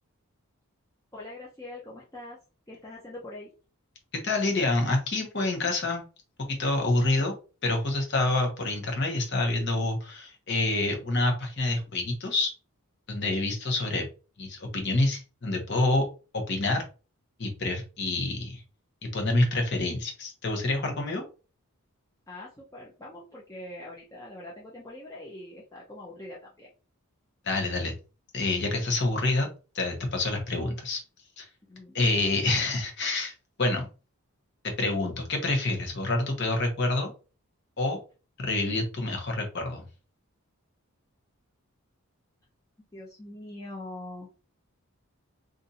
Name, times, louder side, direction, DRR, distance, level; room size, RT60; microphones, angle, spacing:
voice 1, 1.1-2.4 2.7-3.5 22.3-26.7 31.7-32.0 42.9-44.3, left 1 dB, 15° left, -4 dB, 0.6 m, -43 dB
voice 2, 4.2-6.0 6.4-7.3 7.6-12.5 13.1-14.1 14.4-16.1 16.3-16.8 17.4-18.6 19.0-21.2 27.4-27.9 28.3-29.5 29.7-31.0 31.4-31.5 31.9-33.3 33.6-33.9 34.6-37.1 37.8-38.0 38.4-39.9, left 2 dB, 50° left, 3 dB, 1.0 m, -27 dB
2.5 x 2.5 x 4.1 m, 0.34 s
head